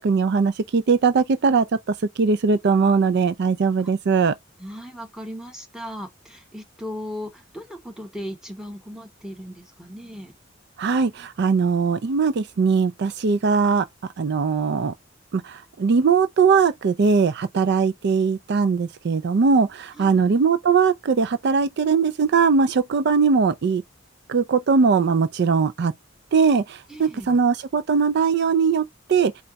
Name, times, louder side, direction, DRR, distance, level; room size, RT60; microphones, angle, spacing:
voice 1, 0.0-4.3 10.8-13.8 14.2-14.9 15.3-23.8 24.3-25.9 26.3-29.3, right 5 dB, 55° right, 0.4 m, -20 dB
voice 2, 4.6-10.3 19.9-20.3 26.9-27.4, equal, 5° right, 1.1 m, -37 dB
4.4 x 2.3 x 3.9 m
head